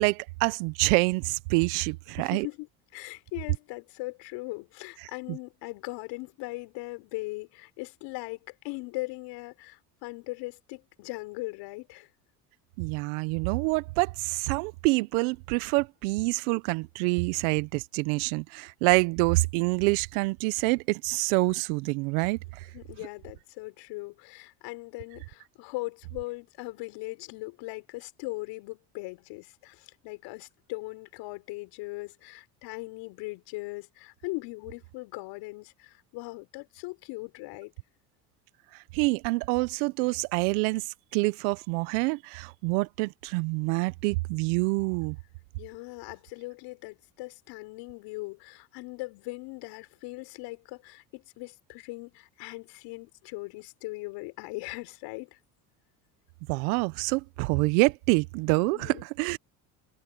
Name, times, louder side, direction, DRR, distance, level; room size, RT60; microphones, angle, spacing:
voice 1, 0.0-2.5 5.3-5.4 12.8-22.7 38.7-45.2 56.5-59.4, right 26 dB, 75° right, 1.2 m, -26 dB
voice 2, 2.2-2.7 2.9-12.1 22.7-37.7 45.6-55.4 58.7-59.0, left 23 dB, 70° left, 4.9 m, -39 dB
hypercardioid pair, 85°, 44 cm